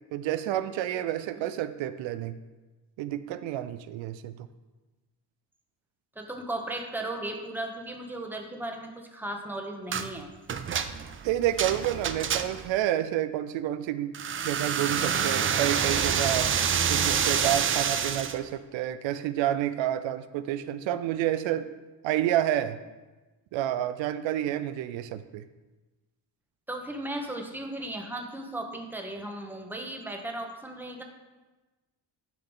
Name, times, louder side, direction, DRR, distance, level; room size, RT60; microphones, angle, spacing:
voice 1, 0.1-2.4 3.0-4.3 11.2-14.2 14.4-16.5 16.9-21.7 22.0-22.8 23.5-25.4, right 12 dB, 90° right, 12 dB, 0.6 m, -29 dB
voice 2, 1.1-1.5 6.1-10.3 26.7-31.0, right 1 dB, 5° right, 2 dB, 0.9 m, -36 dB
sound 1, 9.9-10.1 10.5-12.7 14.1-18.4, right 7 dB, 30° right, 0.4 m, -27 dB
10.0 x 5.7 x 3.9 m, 1.2 s
cardioid pair, 125°, 44 cm